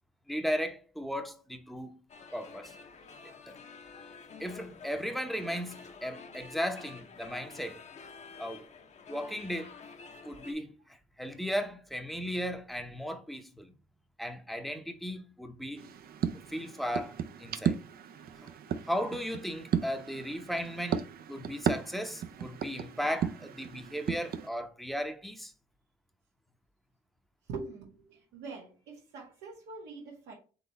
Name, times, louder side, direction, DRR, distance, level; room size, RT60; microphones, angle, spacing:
voice 1, 0.3-2.0 2.3-2.7 3.5-3.6 4.4-7.8 8.4-8.7 9.1-9.8 10.2-13.7 14.2-15.9 16.5-17.8 18.4-18.5 18.9-25.5, equal, ahead, 0.7 m, -36 dB
sound 1, 2.1-10.5, left 4 dB, 40° left, 0.8 m, -49 dB
sound 2, 15.8-24.5, right 8 dB, 60° right, 0.5 m, -35 dB
voice 2, 27.5-30.4, right 4 dB, 90° right, 1.4 m, -43 dB
4.1 x 3.2 x 4.0 m
cardioid pair, 85°, 18 cm